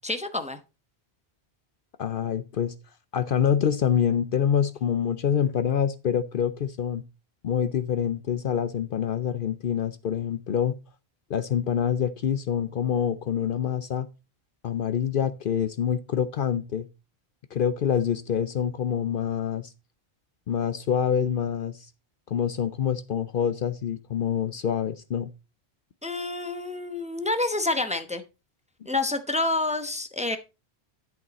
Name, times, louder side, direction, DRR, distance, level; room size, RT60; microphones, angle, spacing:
voice 1, 0.0-0.6 26.0-28.2 28.9-30.4, left 2 dB, 5° right, 0.8 m, -28 dB
voice 2, 2.0-2.7 3.1-7.0 7.4-10.7 11.3-14.1 14.6-16.9 17.5-19.7 20.5-21.9 22.3-25.3, left 8 dB, 60° left, 0.7 m, -26 dB
10.5 x 6.0 x 4.0 m
omnidirectional pair, 1.1 m